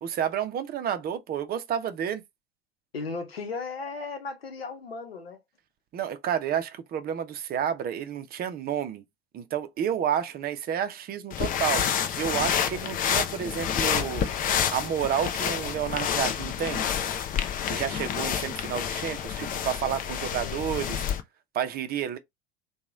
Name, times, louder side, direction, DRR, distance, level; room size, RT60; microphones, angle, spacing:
voice 1, 0.0-2.2 5.9-9.0 9.3-11.8 12.2-14.3 14.7-16.8 17.7-21.0 21.5-22.2, right 9 dB, 30° right, 0.6 m, -30 dB
voice 2, 2.9-5.4 20.4-20.6, left 4 dB, 85° left, 0.8 m, -36 dB
sound 1, 11.3-21.2, left 8 dB, 30° left, 0.5 m, -28 dB
2.9 x 2.3 x 3.6 m
figure-of-eight pair, 75°, 29 cm